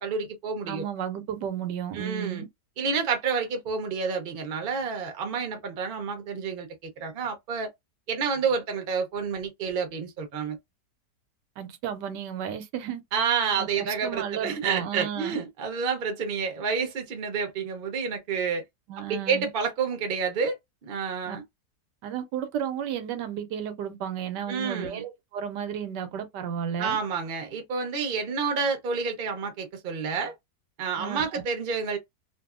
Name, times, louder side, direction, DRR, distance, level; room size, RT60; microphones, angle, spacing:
voice 1, 0.0-0.8 1.9-2.4 2.8-7.7 8.1-10.6 13.1-18.6 19.1-20.6 20.8-21.4 24.5-25.0 26.8-30.3 30.8-32.0, right 5 dB, 45° right, 0.7 m, -29 dB
voice 2, 0.7-2.5 11.6-13.0 13.6-15.4 18.9-19.5 21.3-21.4 22.0-27.0 31.0-31.4, right 9 dB, 85° right, 1.2 m, -33 dB
2.6 x 2.6 x 2.4 m
omnidirectional pair, 1.8 m